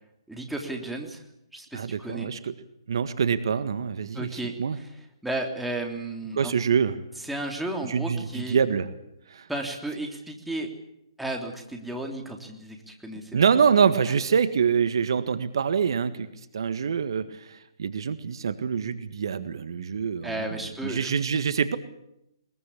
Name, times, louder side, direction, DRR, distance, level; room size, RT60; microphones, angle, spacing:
voice 1, 0.3-1.2 1.5-2.3 4.1-4.9 5.2-6.5 7.2-8.6 9.5-10.7 11.2-13.3 20.2-21.1, right 1 dB, ahead, 1 dB, 3.3 m, -33 dB
voice 2, 1.7-2.5 2.9-4.8 6.3-7.0 7.8-8.9 9.3-9.5 13.3-16.3 16.5-20.6 20.8-21.8, right 6 dB, 60° right, 12 dB, 1.7 m, -25 dB
22.5 x 21.5 x 8.5 m, 0.83 s
figure-of-eight pair, 135°, 3 cm